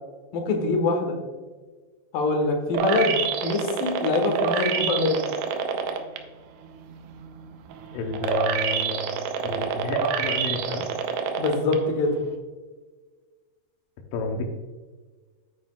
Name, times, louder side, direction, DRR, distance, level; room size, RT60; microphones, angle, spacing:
voice 1, 0.3-1.2 2.1-5.2 11.4-12.2, left 3 dB, 65° left, 3 dB, 2.5 m, -24 dB
sound 1, 2.7-6.2 6.7-11.8 12.2-12.3, right 7 dB, 85° right, 3.1 m, -27 dB
voice 2, 7.9-9.1 9.4-10.9 14.1-14.4, left 3 dB, 85° left, 2 dB, 2.0 m, -30 dB
9.2 x 9.1 x 2.3 m, 1.4 s
omnidirectional pair, 5.1 m